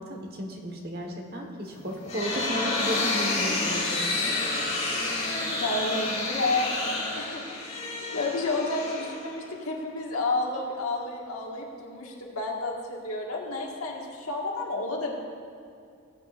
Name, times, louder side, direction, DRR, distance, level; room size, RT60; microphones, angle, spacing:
voice 1, 0.0-4.1, equal, 45° right, 2 dB, 1.3 m, -34 dB
sound 1, 1.7-9.6, left 2 dB, 30° left, 2.3 m, -29 dB
voice 2, 5.3-7.7 8.1-15.2, left 2 dB, 85° left, -1 dB, 1.6 m, -31 dB
18.0 x 8.5 x 2.5 m, 2.5 s
head